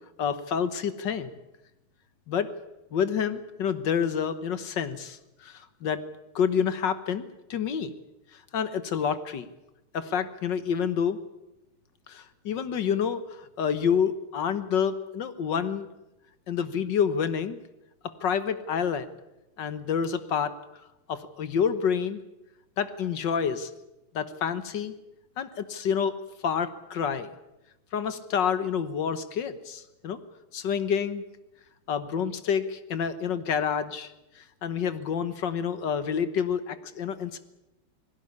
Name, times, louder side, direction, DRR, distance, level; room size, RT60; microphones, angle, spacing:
voice 1, 0.2-1.3 2.3-2.5 2.9-6.0 6.4-7.3 7.5-7.9 8.3-9.5 9.9-11.2 12.1-15.9 16.5-17.6 18.2-19.1 19.6-20.5 21.1-22.2 22.8-23.7 24.1-24.9 25.4-26.1 26.4-27.3 27.9-30.2 30.5-31.2 31.9-37.4, left 7 dB, 60° left, 12 dB, 1.8 m, -28 dB
20.5 x 16.0 x 9.8 m, 0.95 s
omnidirectional pair, 2.3 m